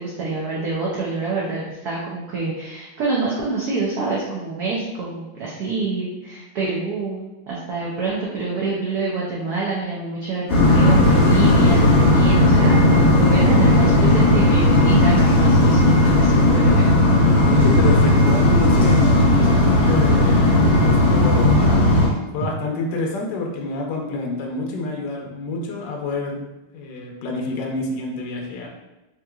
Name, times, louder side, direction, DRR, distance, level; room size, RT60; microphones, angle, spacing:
voice 1, 0.0-16.9 22.4-22.5, right 3 dB, 80° right, -5 dB, 0.8 m, -26 dB
sound 1, 10.5-22.1, left 1 dB, 45° left, 1.5 m, -15 dB
voice 2, 17.5-21.8 22.3-26.4 26.7-28.7, left 3 dB, 70° left, 0 dB, 1.1 m, -28 dB
3.7 x 2.8 x 2.3 m, 1.0 s
omnidirectional pair, 2.3 m